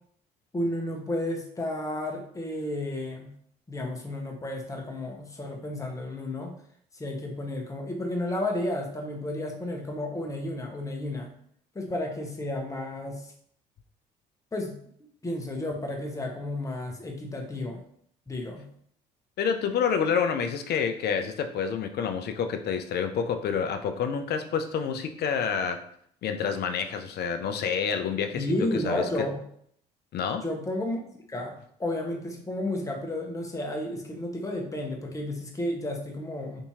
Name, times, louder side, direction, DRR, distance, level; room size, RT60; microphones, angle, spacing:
voice 1, 0.5-3.3 3.7-6.5 6.9-11.3 11.7-13.3 14.5-14.8 15.2-17.8 18.3-18.7 28.3-29.4 30.4-31.0 31.3-36.6, left 1 dB, 15° left, 1 dB, 0.9 m, -32 dB
voice 2, 19.4-25.8 26.2-28.5 28.7-29.0 30.1-30.4, left 6 dB, 55° left, 7 dB, 0.5 m, -28 dB
3.5 x 2.7 x 2.8 m, 0.65 s
hypercardioid pair, 55°, 20 cm